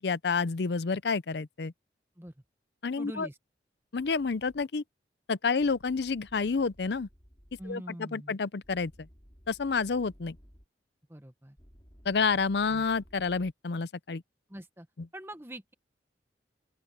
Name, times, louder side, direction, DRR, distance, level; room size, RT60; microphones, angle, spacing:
voice 1, 0.0-1.7 2.8-3.3 3.9-4.8 5.3-7.1 7.7-9.1 9.5-10.4 12.1-14.2, left 4 dB, 70° left, 0.6 m, -29 dB
voice 2, 3.0-3.4 7.6-8.4 11.1-11.6 12.7-12.8 14.5-14.9 15.1-15.7, right 1 dB, 15° right, 1.2 m, -43 dB
sound 1, 3.9-4.6 5.6-7.7 8.6-10.7 11.6-13.5, equal, 25° left, 5.8 m, -57 dB
open air
head